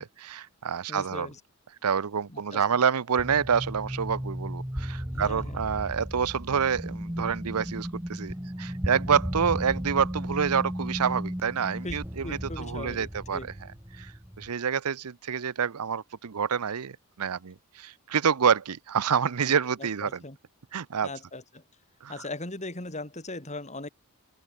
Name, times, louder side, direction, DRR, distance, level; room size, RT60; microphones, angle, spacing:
voice 1, 0.0-1.3 1.8-13.4 14.0-14.1 14.4-20.2 20.7-21.1 22.0-22.1, right 7 dB, 85° right, 0.7 m, -27 dB
voice 2, 0.9-1.4 2.3-2.6 5.1-5.6 11.8-13.5 19.8-20.4 21.0-21.6 22.1-23.9, left 2 dB, 30° left, 4.3 m, -39 dB
sound 1, 3.2-14.5, equal, 10° right, 1.9 m, -35 dB
open air
head